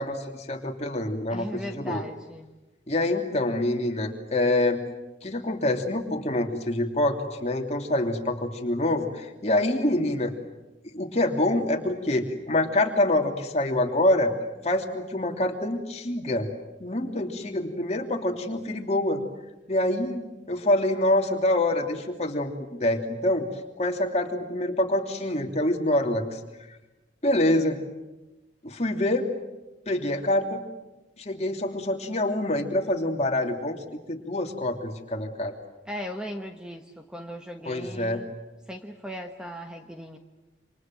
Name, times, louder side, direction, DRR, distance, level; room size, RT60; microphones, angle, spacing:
voice 1, 0.0-2.0 2.9-4.8 5.2-10.3 10.9-14.3 14.6-16.5 16.8-19.2 19.7-22.5 22.8-23.5 23.8-26.4 27.2-27.8 28.6-29.3 29.9-30.6 31.2-33.8 34.1-35.6 37.6-38.2, left 1 dB, 35° left, 3 dB, 3.0 m, -26 dB
voice 2, 1.3-2.5 35.9-38.3 38.7-40.2, equal, 5° right, 4 dB, 1.3 m, -37 dB
28.5 x 27.0 x 7.7 m, 1.1 s
head